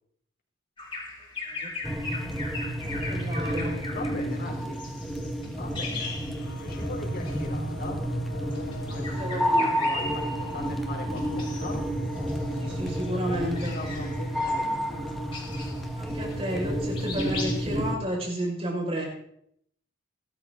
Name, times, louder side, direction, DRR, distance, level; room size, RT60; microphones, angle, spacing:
Bird vocalization bird call bird song, 0.8-6.8 7.2-7.4 8.4-10.7 11.2-11.8 12.2-16.7 16.9-17.6, left 3 dB, 25° left, 6.2 m, -38 dB
voice 1, 1.5-2.2 2.9-3.8 5.6-5.7 9.2-9.8 12.6-13.7 16.0-19.1, right 1 dB, 30° right, -1 dB, 5.9 m, -32 dB
sound 1, 1.8-18.0, equal, ahead, 1.8 m, -30 dB
voice 2, 3.8-4.9 5.4-6.2 6.6-8.1 8.5-11.8 12.5-15.1, left 2 dB, 50° left, 1 dB, 4.0 m, -40 dB
sound 2, 6.4-15.9, left 1 dB, 75° left, 2.2 m, -46 dB
22.5 x 13.0 x 4.0 m, 0.70 s
head